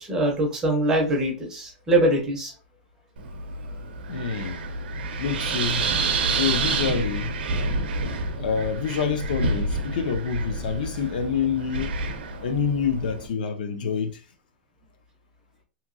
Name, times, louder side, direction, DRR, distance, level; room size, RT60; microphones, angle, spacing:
voice 1, 0.0-2.5, right 1 dB, 10° right, 0.5 m, -23 dB
Wind, 3.2-13.3, right 3 dB, 90° right, 0.6 m, -28 dB
voice 2, 4.1-4.6 5.2-5.9 6.3-7.3 8.4-11.9 12.4-14.2, left 6 dB, 60° left, 0.5 m, -27 dB
2.9 x 2.6 x 2.5 m
supercardioid pair, 180°, 5 cm